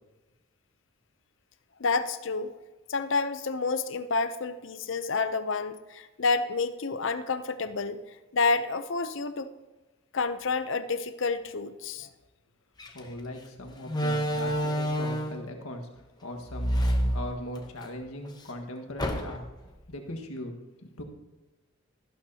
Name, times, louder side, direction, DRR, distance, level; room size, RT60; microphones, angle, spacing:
voice 1, 1.8-2.6 2.9-8.0 8.3-9.5 10.1-12.1, left 4 dB, 60° left, 11 dB, 0.6 m, -29 dB
Slam, 12.8-13.0 13.9-15.4 16.5-17.9 18.3-18.4 19.0-19.6, equal, 20° left, 0.8 m, -28 dB
voice 2, 12.9-16.8 17.0-19.4 19.9-20.5 20.8-21.0, left 1 dB, 90° left, 3 dB, 1.7 m, -39 dB
13.5 x 11.5 x 2.9 m, 1.1 s
head